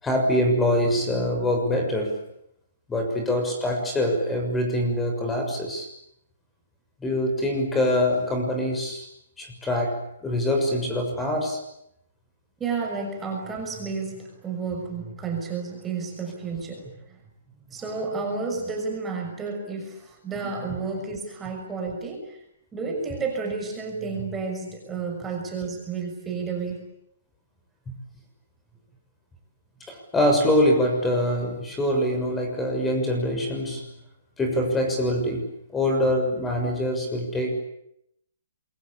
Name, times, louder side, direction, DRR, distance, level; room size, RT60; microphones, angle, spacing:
voice 1, 0.0-2.2 2.9-5.9 7.0-9.1 9.4-11.6 29.9-33.9 34.4-37.6, left 1 dB, 10° left, 4 dB, 6.5 m, -24 dB
voice 2, 12.6-17.2 17.7-22.4 22.7-26.9, right 4 dB, 15° right, 2 dB, 6.2 m, -31 dB
28.0 x 23.5 x 8.7 m, 0.75 s
hypercardioid pair, 150°, 0 cm